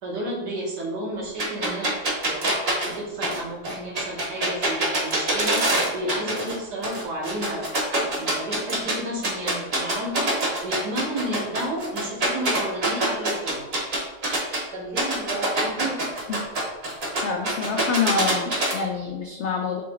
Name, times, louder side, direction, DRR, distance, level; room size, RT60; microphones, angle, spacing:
voice 1, 0.0-1.9 2.3-2.5 2.8-5.7 5.9-7.7 8.0-13.6 14.7-16.0, right 1 dB, 75° right, -3 dB, 1.8 m, -32 dB
sound 1, 1.4-6.6 6.8-8.9 9.2-14.6 15.0-18.7, right 1 dB, 40° right, 1.1 m, -24 dB
voice 2, 17.2-19.8, left 5 dB, 80° left, 2 dB, 0.6 m, -26 dB
4.9 x 2.9 x 3.6 m, 1.0 s
omnidirectional pair, 1.8 m